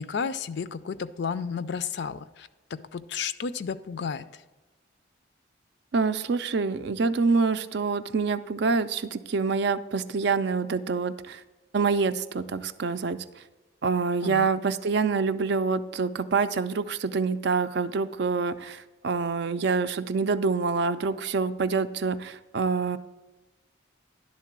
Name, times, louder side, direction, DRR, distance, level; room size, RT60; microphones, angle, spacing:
voice 1, 0.0-4.4 14.2-14.5, left 6 dB, 60° left, 14 dB, 0.4 m, -32 dB
voice 2, 5.9-11.4 11.7-13.2 13.8-23.0, right 4 dB, 60° right, 12 dB, 0.4 m, -26 dB
11.0 x 3.8 x 7.2 m, 1.2 s
head